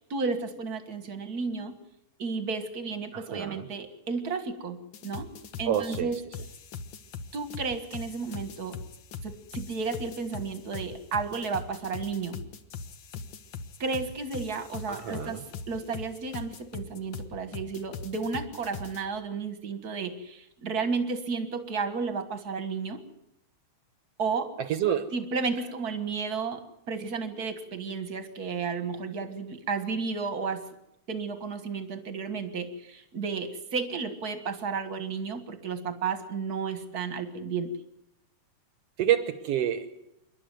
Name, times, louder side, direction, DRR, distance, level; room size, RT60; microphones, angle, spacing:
voice 1, 0.0-1.7 2.2-4.8 5.0-5.3 5.6-6.2 7.3-8.8 9.2-12.4 13.8-15.4 15.7-23.0 24.2-24.5 25.1-26.6 26.9-30.7 31.1-37.7, right 4 dB, 40° right, 9 dB, 1.5 m, -32 dB
voice 2, 3.1-3.7 5.7-6.1 14.9-15.4 24.6-25.1 39.0-39.9, right 10 dB, 65° right, 11 dB, 1.7 m, -28 dB
sound 1, 4.9-19.0, left 5 dB, 70° left, 1.1 m, -41 dB
27.0 x 12.0 x 9.2 m, 0.83 s
omnidirectional pair, 3.7 m